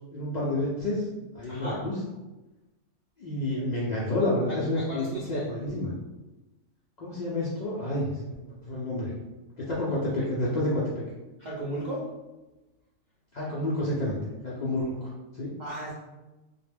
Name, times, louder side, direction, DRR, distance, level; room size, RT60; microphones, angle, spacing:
voice 1, 0.1-1.1 1.3-2.0 3.2-5.9 7.0-8.3 8.6-9.1 9.6-11.0 13.3-14.2 14.4-15.5, left 1 dB, 75° left, -7 dB, 0.4 m, -29 dB
voice 2, 1.5-1.8 4.9-5.5 11.4-12.1 15.6-15.9, right 1 dB, 55° right, -7 dB, 0.5 m, -34 dB
2.2 x 2.1 x 3.2 m, 1.1 s
omnidirectional pair, 1.3 m